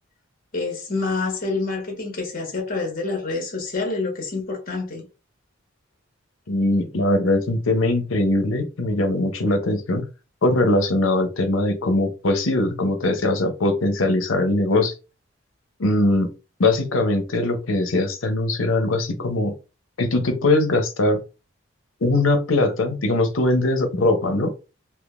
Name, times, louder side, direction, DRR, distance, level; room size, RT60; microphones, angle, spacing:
voice 1, 0.5-5.1, left 3 dB, 45° left, 1.3 m, -27 dB
voice 2, 6.5-10.0 10.4-14.9 15.8-16.3 16.6-19.5 20.0-21.2 22.0-24.5, left 2 dB, 85° left, 0.7 m, -21 dB
3.6 x 2.7 x 2.4 m
head